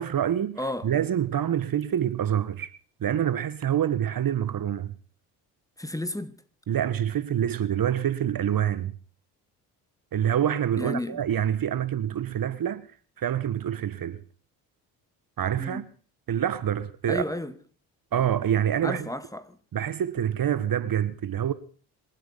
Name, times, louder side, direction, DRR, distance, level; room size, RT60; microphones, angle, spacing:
voice 1, 0.0-2.7 3.0-4.9 6.7-8.9 10.1-12.8 13.2-14.2 15.4-15.8 16.3-17.2 18.1-19.1 19.7-21.5, right 10 dB, 50° right, 1.5 m, -26 dB
voice 2, 0.6-0.9 5.8-6.4 10.8-11.2 15.6-15.9 17.1-17.6 18.2-18.3 18.8-19.6, left 1 dB, 5° left, 1.9 m, -32 dB
27.0 x 9.3 x 5.6 m
hypercardioid pair, 60°, 46 cm